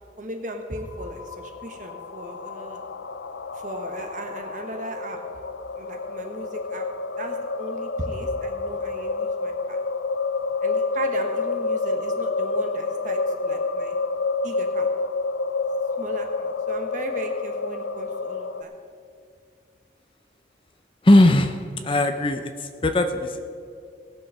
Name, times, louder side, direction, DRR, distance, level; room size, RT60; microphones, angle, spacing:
voice 1, 0.2-2.8 3.5-5.2 5.8-6.9 7.2-9.8 10.6-14.0 14.4-14.9 16.0-18.7, right 1 dB, 45° right, 3 dB, 1.1 m, -36 dB
sound 1, 0.8-18.6, left 3 dB, 90° left, 0.5 m, -29 dB
voice 2, 21.0-23.4, left 1 dB, 30° left, 7 dB, 0.5 m, -19 dB
18.0 x 6.9 x 5.5 m, 2.4 s
head